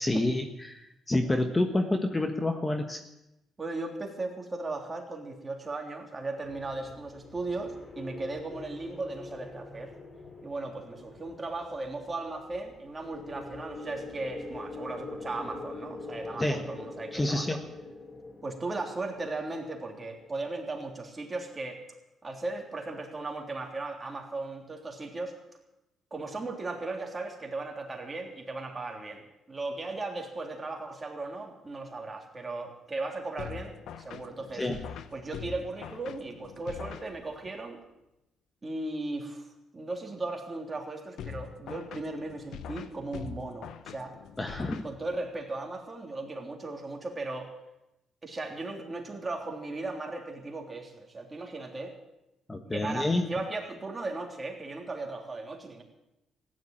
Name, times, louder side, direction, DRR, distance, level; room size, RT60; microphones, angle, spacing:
voice 1, 0.0-3.0 16.4-16.7 17.1-17.6 34.5-34.8 44.4-44.9 52.5-53.3, left 1 dB, 20° left, 6 dB, 1.4 m, -28 dB
voice 2, 3.6-9.9 10.4-17.6 18.4-21.8 22.2-25.4 26.1-34.7 35.1-37.8 38.6-39.5 39.7-44.1 44.8-47.5 48.2-52.0 52.7-55.8, right 2 dB, 25° right, 2 dB, 3.3 m, -37 dB
sound 1, 6.4-20.3, left 3 dB, 35° left, 3.3 m, -44 dB
sound 2, 33.4-37.6 41.2-45.4, left 8 dB, 80° left, 0.9 m, -43 dB
15.0 x 10.5 x 8.8 m, 0.91 s
cardioid pair, 90°, 0 cm